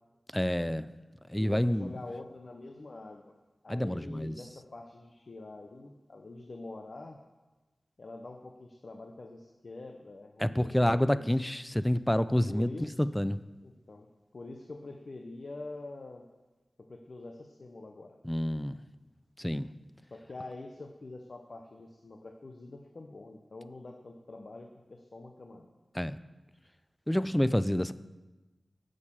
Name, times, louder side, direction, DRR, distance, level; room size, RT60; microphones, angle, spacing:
voice 1, 0.3-0.9 1.3-1.9 3.7-4.3 10.4-13.4 18.2-18.8 19.4-19.7 25.9-26.2 27.1-27.9, left 1 dB, 5° left, 14 dB, 0.4 m, -28 dB
voice 2, 1.4-3.3 3.6-7.2 8.0-11.3 12.5-13.0 13.6-14.1 14.3-16.2 16.8-18.2 20.1-25.7, left 2 dB, 50° left, 4 dB, 0.8 m, -45 dB
9.9 x 6.5 x 7.3 m, 1.2 s
wide cardioid pair, 110°, 0 cm